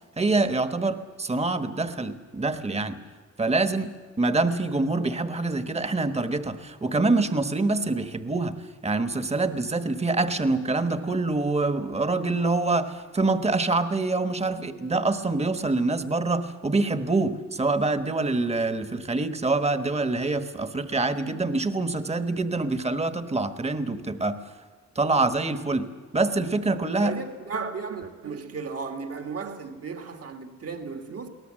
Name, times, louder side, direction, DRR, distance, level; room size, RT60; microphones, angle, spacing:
voice 1, 0.2-3.0 3.4-8.5 8.8-24.4 24.9-27.2, right 3 dB, 20° right, 1.3 m, -25 dB
voice 2, 26.9-31.3, right 5 dB, 55° right, 1.8 m, -35 dB
23.0 x 18.0 x 7.6 m
cardioid pair, 95°, 29 cm